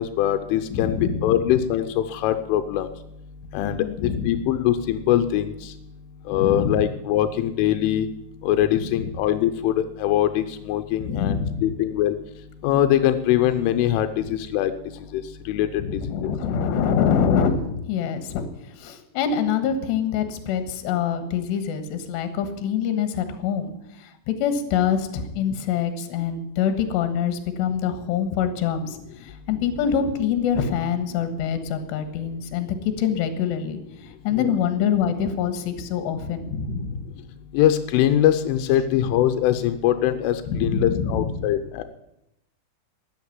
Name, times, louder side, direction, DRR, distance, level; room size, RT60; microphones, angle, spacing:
voice 1, 0.0-2.9 3.5-5.5 6.3-8.1 8.4-12.2 12.6-14.7 15.1-15.2 15.5-15.7 15.9-16.3 34.3-34.5 37.5-41.8, left 11 dB, 90° left, 9 dB, 3.3 m, -22 dB
voice 2, 0.7-1.4 3.6-4.4 6.3-6.9 8.9-9.1 11.0-11.6 15.8-18.4 18.8-33.8 34.3-37.1 40.5-41.5, left 7 dB, 70° left, 8 dB, 3.4 m, -25 dB
13.0 x 9.9 x 9.5 m, 0.84 s
omnidirectional pair, 5.5 m